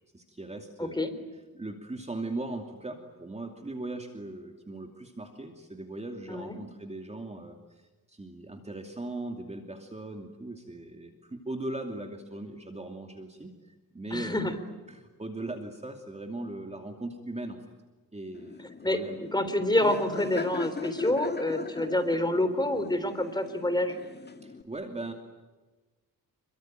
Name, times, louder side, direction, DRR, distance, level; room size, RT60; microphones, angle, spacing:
voice 1, 0.1-1.1 1.5-7.6 8.1-13.5 13.9-14.6 14.9-17.6 18.1-19.2 24.4-25.1, right 2 dB, 15° right, 4 dB, 2.6 m, -39 dB
voice 2, 0.8-1.1 6.3-6.6 14.1-14.5 18.8-19.0 19.3-24.0, left 1 dB, 10° left, 8 dB, 3.9 m, -27 dB
Laughter, 18.3-24.6, left 4 dB, 25° left, 1.9 m, -39 dB
27.5 x 23.5 x 9.2 m, 1.2 s
cardioid pair, 105°, 37 cm